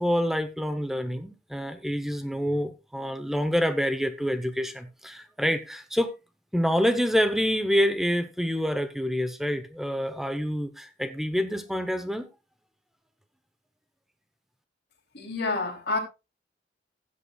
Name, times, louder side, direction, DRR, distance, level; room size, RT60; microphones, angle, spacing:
voice 1, 0.0-6.2 6.5-12.3, equal, ahead, 0.7 m, -27 dB
voice 2, 15.1-16.0, left 3 dB, 65° left, 3.0 m, -28 dB
16.0 x 8.3 x 2.3 m
head